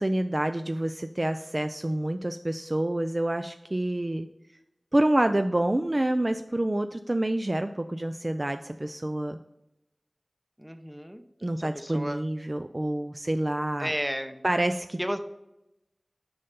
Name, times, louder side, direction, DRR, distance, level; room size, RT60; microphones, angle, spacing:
voice 1, 0.0-4.3 4.9-9.4 11.4-13.9 14.4-15.0, right 1 dB, 35° right, 8 dB, 0.3 m, -27 dB
voice 2, 10.6-11.2 11.6-12.2 13.8-14.4 15.0-15.2, equal, 10° right, 8 dB, 0.7 m, -33 dB
5.6 x 5.4 x 5.2 m, 0.91 s
wide cardioid pair, 45°, 0 cm